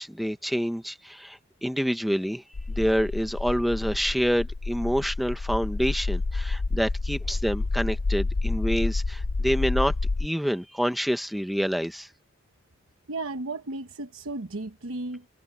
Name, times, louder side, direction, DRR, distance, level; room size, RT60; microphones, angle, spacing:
voice 1, 0.0-2.4 2.8-9.9 10.2-12.1, equal, ahead, 1.2 m, -27 dB
sound 1, 2.5-10.3, left 3 dB, 65° left, 0.7 m, -29 dB
voice 2, 13.1-15.3, right 2 dB, 75° right, 1.1 m, -34 dB
head